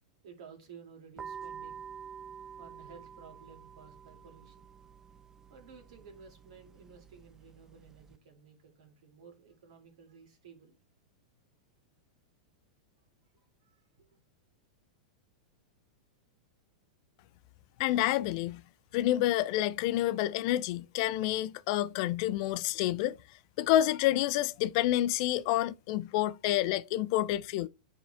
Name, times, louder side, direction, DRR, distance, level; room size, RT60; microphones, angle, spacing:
voice 1, 0.2-1.9 2.6-4.7 5.5-10.8 13.3-14.1, right 6 dB, 70° right, 2.4 m, -54 dB
sound 1, 1.2-8.2, right 7 dB, 15° right, 0.4 m, -48 dB
voice 2, 17.8-18.6 18.9-23.2 23.6-27.7, left 14 dB, 55° left, 0.4 m, -28 dB
9.1 x 3.7 x 3.4 m
hypercardioid pair, 115°, 3 cm